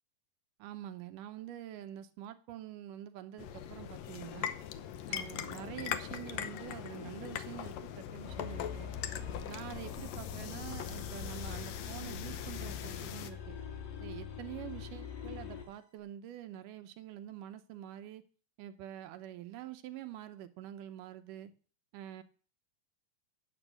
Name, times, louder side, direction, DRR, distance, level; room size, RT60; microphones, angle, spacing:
voice 1, 0.6-4.5 5.1-8.9 9.4-13.6 14.0-18.2 18.6-21.5 21.9-22.2, right 12 dB, 85° right, 10 dB, 2.4 m, -46 dB
sound 1, 3.4-13.3, left 9 dB, 70° left, 1.7 m, -41 dB
sound 2, 8.2-15.7, left 7 dB, 90° left, 3.5 m, -44 dB
9.9 x 7.0 x 8.1 m, 0.41 s
omnidirectional pair, 3.7 m